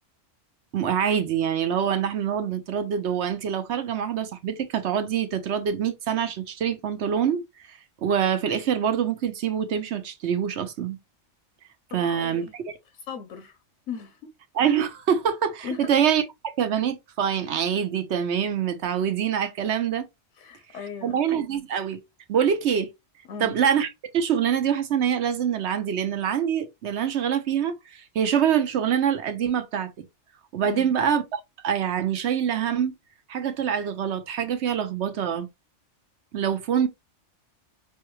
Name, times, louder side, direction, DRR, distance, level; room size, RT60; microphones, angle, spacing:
voice 1, 0.7-7.4 8.0-11.0 11.9-12.5 14.6-20.1 21.0-22.0 22.3-22.9 23.4-29.9 30.5-32.9 33.3-35.5 36.3-36.9, right 8 dB, 65° right, 0.9 m, -25 dB
voice 2, 11.9-12.5 12.9-13.6 13.9-14.2 15.6-15.9 20.3-21.2 23.3-23.5 30.6-30.9, left 6 dB, 90° left, 1.0 m, -37 dB
5.3 x 2.2 x 3.1 m
omnidirectional pair, 1.3 m